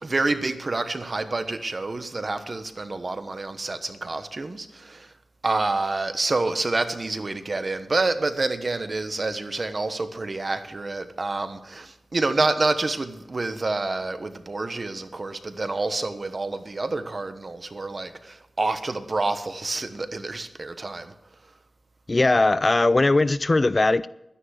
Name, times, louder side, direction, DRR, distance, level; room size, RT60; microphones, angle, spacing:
voice 1, 0.0-5.1 5.4-21.1, right 3 dB, 40° right, 1.2 m, -28 dB
voice 2, 22.1-24.1, left 2 dB, 35° left, 0.4 m, -19 dB
12.0 x 10.0 x 6.4 m
wide cardioid pair, 80°, 0 cm